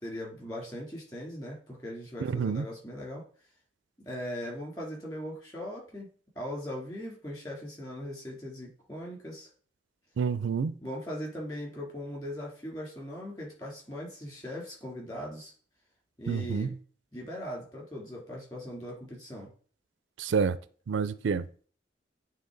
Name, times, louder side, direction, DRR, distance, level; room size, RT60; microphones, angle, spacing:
voice 1, 0.0-3.2 4.0-9.5 10.8-15.5 16.2-16.7 17.1-19.5, equal, 25° left, 3.0 m, -39 dB
voice 2, 2.2-2.7 10.2-10.7 16.3-16.7 20.2-20.6 20.9-21.4, right 6 dB, 80° right, 0.4 m, -28 dB
8.8 x 3.3 x 3.9 m
head